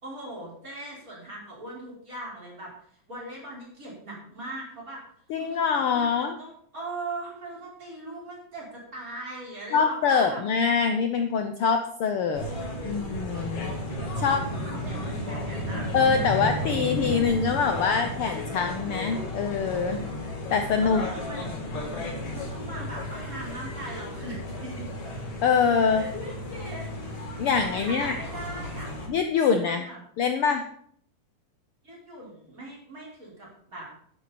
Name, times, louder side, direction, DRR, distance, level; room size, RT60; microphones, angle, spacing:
voice 1, 0.0-2.7 3.1-5.0 5.4-5.6 5.9-10.4 12.4-13.0 14.1-16.6 20.8-21.5 22.3-24.9 25.9-27.2 27.7-28.9 29.4-30.0 31.8-33.9, right 2 dB, 25° right, -4 dB, 5.1 m, -40 dB
voice 2, 5.3-6.4 9.7-12.4 12.8-13.7 14.2-14.4 15.9-20.0 20.5-21.1 25.4-26.0 27.4-28.2 29.1-29.9 30.2-30.6, left 6 dB, 80° left, 7 dB, 1.2 m, -24 dB
sound 1, 12.3-29.1, left 1 dB, 45° left, 3.5 m, -33 dB
12.5 x 11.0 x 4.3 m, 0.63 s
omnidirectional pair, 3.6 m